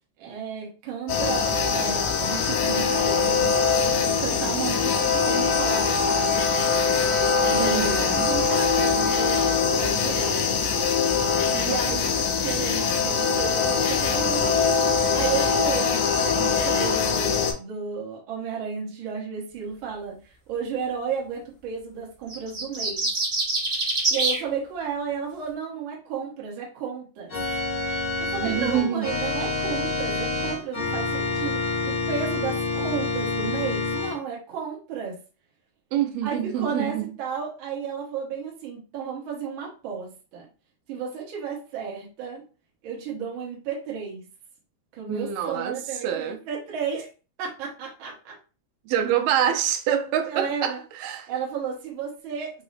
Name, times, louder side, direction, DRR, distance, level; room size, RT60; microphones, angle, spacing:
voice 1, 0.2-3.5 3.9-6.4 7.4-9.5 9.7-10.6 11.5-14.7 15.1-23.1 24.1-27.3 28.2-35.1 36.2-40.4 40.9-42.4 42.8-44.2 44.9-47.1 47.4-48.3 50.3-50.8 51.3-52.5, right 6 dB, 65° right, 1.2 m, -33 dB
sound 1, 1.1-17.5, left 5 dB, 75° left, 1.9 m, -23 dB
voice 2, 7.5-8.3 28.4-29.1 35.9-37.1 45.1-46.4 48.9-51.3, right 9 dB, 85° right, 2.3 m, -26 dB
sound 2, 22.3-24.4, right 2 dB, 35° right, 1.0 m, -25 dB
Organ, 27.3-34.1, left 3 dB, 45° left, 0.9 m, -27 dB
5.4 x 2.0 x 2.6 m
omnidirectional pair, 3.9 m